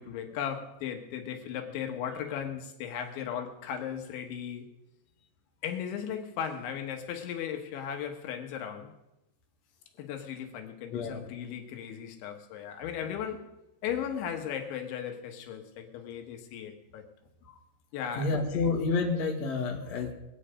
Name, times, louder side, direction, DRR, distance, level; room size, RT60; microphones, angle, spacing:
voice 1, 0.0-4.7 5.6-8.9 10.0-13.5 13.8-17.1 17.9-18.7, left 8 dB, 90° left, 5 dB, 3.8 m, -36 dB
voice 2, 10.9-11.2 17.5-17.6 18.2-20.1, left 4 dB, 45° left, 0 dB, 2.6 m, -29 dB
23.0 x 9.1 x 5.1 m, 0.93 s
omnidirectional pair, 5.2 m